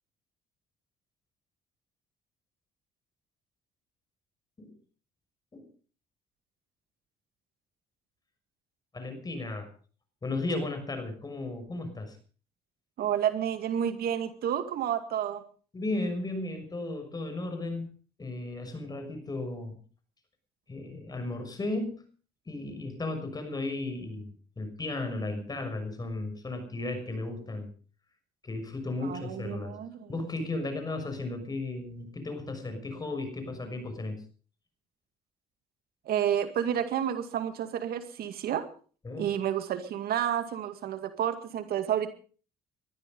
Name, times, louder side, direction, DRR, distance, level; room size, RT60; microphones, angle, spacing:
voice 1, 8.9-9.7 10.2-12.2 15.7-17.9 18.2-19.8 20.7-22.0 22.5-27.7 28.4-29.8 30.1-34.2 39.0-39.3, left 2 dB, 25° left, 7 dB, 6.4 m, -35 dB
voice 2, 13.0-15.4 29.0-30.1 36.1-38.7 39.2-42.1, right 9 dB, 65° right, 9 dB, 2.1 m, -30 dB
20.5 x 13.0 x 5.4 m, 0.41 s
cardioid pair, 110°, 17 cm